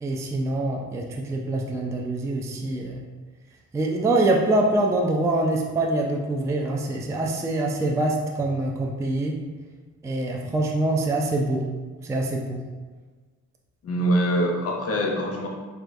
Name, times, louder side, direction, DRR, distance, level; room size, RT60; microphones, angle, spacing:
voice 1, 0.0-3.0 3.7-9.4 10.0-11.6 12.0-12.6, right 2 dB, 10° right, 0 dB, 0.3 m, -24 dB
voice 2, 13.8-15.5, right 1 dB, 50° left, 0 dB, 0.8 m, -24 dB
4.4 x 2.3 x 2.5 m, 1.4 s
cardioid pair, 90°, 30 cm